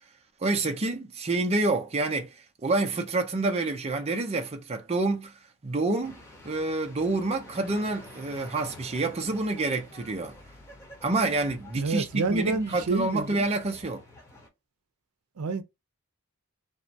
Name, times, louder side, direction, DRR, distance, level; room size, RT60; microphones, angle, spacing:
voice 1, 0.4-5.4 5.6-6.2 6.4-10.4 11.0-14.0, right 2 dB, 30° right, 0.5 m, -28 dB
sound 1, 6.0-14.5, left 1 dB, 15° left, 1.0 m, -49 dB
voice 2, 11.8-13.6 15.4-15.6, right 3 dB, 80° right, 0.5 m, -29 dB
3.0 x 2.2 x 2.6 m
head